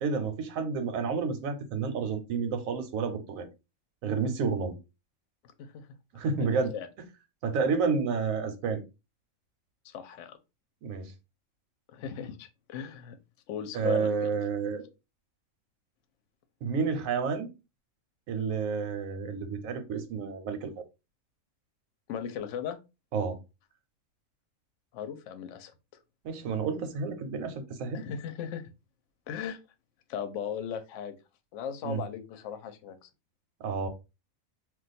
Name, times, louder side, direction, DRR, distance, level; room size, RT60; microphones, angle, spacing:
voice 1, 0.0-3.5 4.0-4.7 6.1-6.7 7.4-8.8 10.8-11.1 13.7-14.8 16.6-17.5 18.3-20.7 23.1-23.4 26.2-28.0 31.8-32.0 33.6-33.9, right 5 dB, 85° right, 1.1 m, -30 dB
voice 2, 6.3-6.9 9.8-10.4 11.9-13.2 13.5-14.3 22.1-22.8 24.9-25.7 27.9-28.6 29.3-29.6 30.1-31.1 31.5-33.1, left 8 dB, 70° left, 0.9 m, -37 dB
2.4 x 2.3 x 3.9 m
omnidirectional pair, 1.4 m